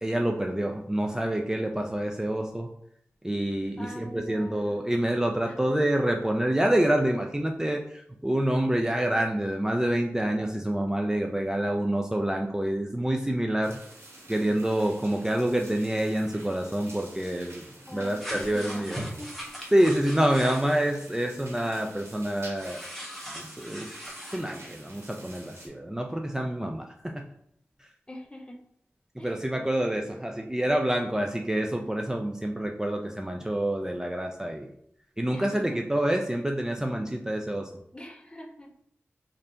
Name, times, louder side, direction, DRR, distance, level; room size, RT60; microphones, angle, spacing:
voice 1, 0.0-2.7 3.2-13.8 14.3-19.1 19.7-22.8 23.3-23.9 24.3-27.3 27.8-27.9 29.2-34.7 35.2-37.7, right 1 dB, 15° right, 2 dB, 0.4 m, -27 dB
voice 2, 3.8-4.9 5.4-5.8 17.9-19.4 28.1-28.6 29.2-29.4 35.3-35.8 37.9-38.7, left 1 dB, 20° left, 1 dB, 0.7 m, -44 dB
sound 1, 13.6-25.7, right 1 dB, 75° right, 1.2 m, -49 dB
sound 2, 18.2-20.7 22.5-24.4, equal, 5° left, 1.1 m, -39 dB
3.3 x 2.6 x 4.2 m, 0.70 s
wide cardioid pair, 55°, 5 cm